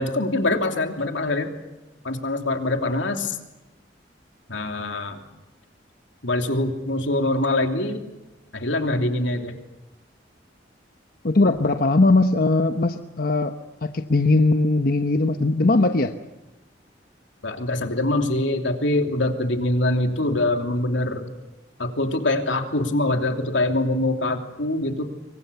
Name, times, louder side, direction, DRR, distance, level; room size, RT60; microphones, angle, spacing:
voice 1, 0.0-1.5 2.0-3.4 4.5-5.2 6.2-8.0 8.5-9.5 17.4-21.3 21.8-25.0, left 2 dB, 90° left, 4 dB, 3.0 m, -24 dB
voice 2, 11.2-13.5 13.8-16.1, left 2 dB, 55° left, 7 dB, 1.0 m, -19 dB
28.0 x 24.0 x 7.0 m, 1.0 s
head